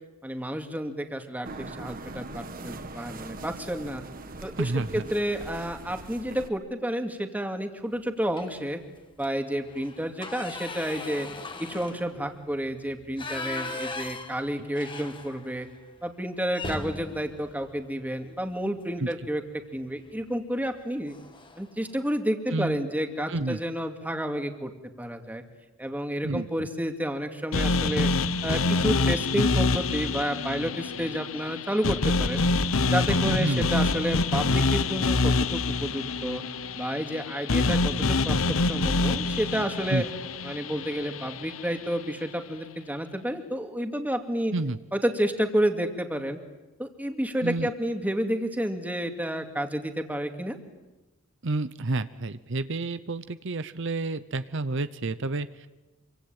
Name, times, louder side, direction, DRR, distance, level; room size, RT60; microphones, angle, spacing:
voice 1, 0.2-4.0 4.4-8.8 9.2-11.3 11.6-15.7 16.0-19.4 19.7-21.1 21.6-24.7 25.0-25.4 25.8-28.1 28.4-32.4 32.8-36.4 36.8-40.0 40.4-44.5 44.9-46.4 46.8-50.6, equal, 10° right, 5 dB, 2.4 m, -30 dB
sound 1, 1.4-6.5, right 2 dB, 45° right, 1.7 m, -41 dB
voice 2, 4.6-5.0 19.0-19.1 22.5-22.8 23.3-23.6 26.2-26.7 33.2-33.7 39.9-40.0 44.5-44.8 47.4-47.7 51.4-55.7, right 2 dB, 65° right, 13 dB, 0.9 m, -29 dB
sound 2, 8.3-8.7 9.1-9.3 9.6-15.7 16.0-16.1 16.5-18.6 20.0-20.3 20.6-20.8 21.1-21.7, left 2 dB, 25° left, 2.0 m, -39 dB
sound 3, 27.5-41.7, left 3 dB, 75° left, 0.9 m, -26 dB
26.5 x 25.0 x 9.0 m, 1.1 s
head